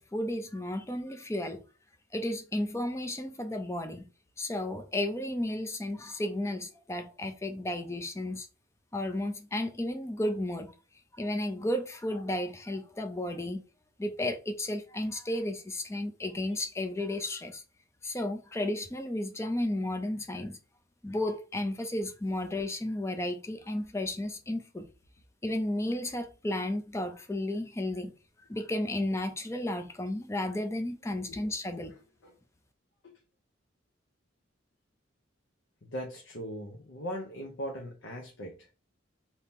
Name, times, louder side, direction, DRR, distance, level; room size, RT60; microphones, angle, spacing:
voice 1, 0.0-1.6 2.1-4.0 4.4-8.5 8.9-10.7 11.2-13.6 14.0-17.6 18.0-20.6 21.0-24.8 25.4-28.1 28.5-31.9, left 1 dB, 15° left, 0.4 m, -33 dB
voice 2, 31.3-32.3 33.0-33.2 35.8-38.7, equal, 70° left, 0.7 m, -40 dB
2.8 x 2.8 x 3.5 m
head